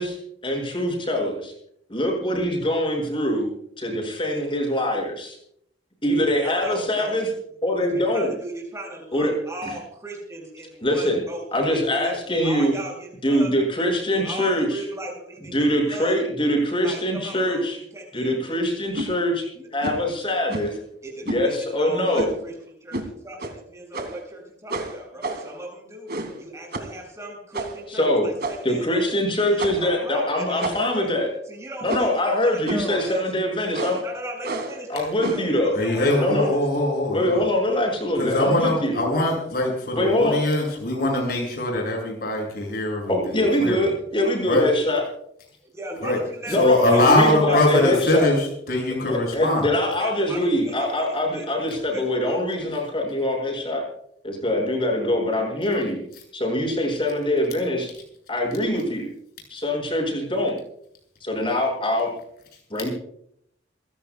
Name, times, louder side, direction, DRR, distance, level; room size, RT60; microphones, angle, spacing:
voice 1, 0.4-1.5 1.9-3.5 3.8-5.4 6.0-7.3 7.6-8.3 9.1-9.3 9.6-9.7 10.8-11.2 11.5-12.7 13.2-14.8 15.5-17.8 18.1-19.4 19.7-20.8 21.3-22.3 27.9-28.2 28.6-31.3 31.8-34.0 34.9-35.8 36.2-36.5 37.1-39.0 40.0-40.4 43.1-45.0 46.5-48.3 49.0-53.8 54.2-56.0 56.3-57.9 58.3-59.1 59.5-60.6 61.2-62.1 62.7-62.9, left 1 dB, 30° left, 0 dB, 6.6 m, -23 dB
voice 2, 6.3-7.2 7.8-13.5 14.1-16.2 16.8-18.3 19.5-19.7 21.0-26.1 26.4-31.1 31.5-33.3 34.0-36.6 37.3-37.5 45.7-46.6 46.9-47.7 48.1-48.3 50.0-52.4, right 1 dB, 15° right, -1 dB, 7.3 m, -37 dB
sound 1, 18.9-19.1 19.8-20.1 20.5-20.8 21.3-21.5 22.1-22.4 22.9-23.1 23.4-23.5 23.9-24.3 24.7-25.6 26.1-26.4 26.7-27.0 27.5-27.9 28.4-28.8 29.6-29.9 30.6-31.0 31.9-32.2 32.7-32.9 33.7-34.1 34.4-34.8 35.2-35.5, right 2 dB, 55° right, 2.4 m, -30 dB
voice 3, 35.7-37.4 38.2-43.9 44.4-44.7 46.0-46.2 46.5-49.7, left 1 dB, 55° left, 0 dB, 7.5 m, -22 dB
28.0 x 16.5 x 2.4 m, 0.71 s
head